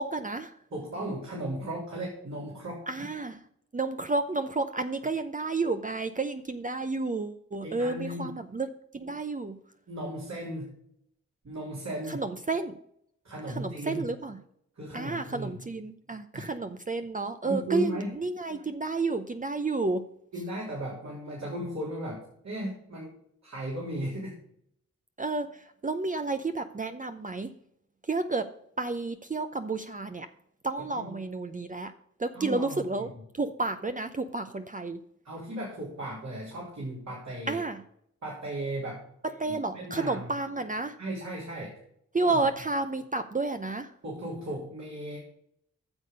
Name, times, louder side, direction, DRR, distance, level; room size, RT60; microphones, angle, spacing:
voice 1, 0.0-0.6 2.9-3.4 3.7-8.7 8.9-9.6 12.1-12.8 13.5-14.4 14.9-20.1 25.2-27.5 28.0-30.3 30.6-31.9 32.2-33.1 33.3-35.0 37.5-37.8 39.2-41.0 42.1-43.9, right 3 dB, 25° right, 8 dB, 0.7 m, -31 dB
voice 2, 0.7-3.0 7.6-8.3 9.9-10.7 11.4-12.2 13.2-14.0 14.7-15.6 16.3-16.5 17.4-18.1 20.3-24.4 30.9-31.1 32.3-33.1 35.2-37.6 38.2-39.0 39.5-40.3 41.0-41.7 42.2-42.4 44.0-45.2, right 1 dB, 65° right, -5 dB, 3.6 m, -36 dB
9.7 x 6.7 x 5.3 m, 0.70 s
cardioid pair, 55°, 30 cm